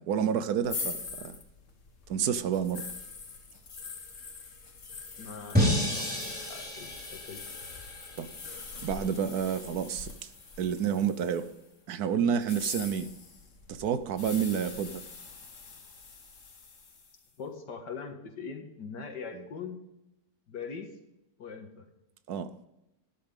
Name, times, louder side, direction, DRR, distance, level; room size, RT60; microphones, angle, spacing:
voice 1, 0.0-1.4 2.1-2.9 8.2-8.3 8.8-10.3 10.6-11.5 11.9-13.1 13.7-15.0 22.3-22.5, right 8 dB, 70° right, 12 dB, 1.2 m, -29 dB
sound 1, 0.6-11.6 12.3-17.2, left 4 dB, 50° left, 1.7 m, -43 dB
voice 2, 5.2-7.4 17.4-19.8 20.5-20.9 21.4-21.9, left 5 dB, 80° left, 5 dB, 2.2 m, -42 dB
sound 2, 5.5-8.7, equal, 5° right, 4.8 m, -30 dB
12.5 x 10.5 x 3.7 m, 0.88 s
omnidirectional pair, 1.8 m